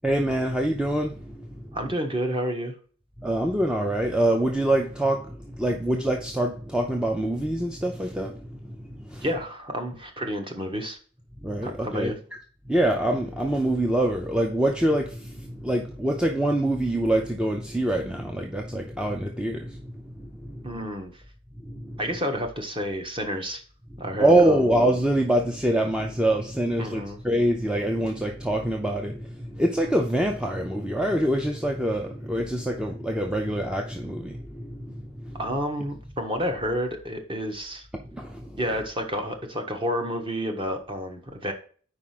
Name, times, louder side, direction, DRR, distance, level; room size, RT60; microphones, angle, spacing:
voice 1, 0.0-1.1 3.2-8.6 9.1-9.3 11.4-12.1 12.7-19.8 20.2-20.3 20.5-20.6 21.7-22.0 24.2-34.9 38.2-38.4, right 1 dB, 5° right, 2 dB, 0.5 m, -25 dB
voice 2, 1.7-2.7 9.2-11.0 11.6-12.2 20.6-21.2 22.0-23.6 24.0-24.6 26.8-27.2 35.4-37.9 38.6-41.5, equal, 25° right, 4 dB, 1.1 m, -30 dB
4.9 x 4.8 x 5.8 m, 0.42 s
head